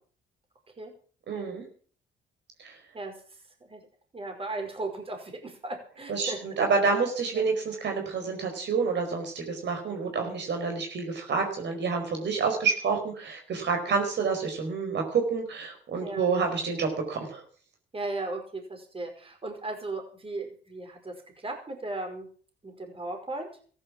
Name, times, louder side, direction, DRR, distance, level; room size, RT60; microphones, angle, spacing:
voice 1, 1.3-1.6 2.6-2.7 6.1-17.4, right 5 dB, 60° right, 4 dB, 4.7 m, -28 dB
voice 2, 2.9-3.8 4.1-6.6 7.3-7.4 13.9-14.0 16.0-16.3 17.9-22.3 22.6-23.5, right 2 dB, 30° right, 3 dB, 5.2 m, -37 dB
14.5 x 11.0 x 7.2 m, 0.43 s
cardioid pair, 90°, 20 cm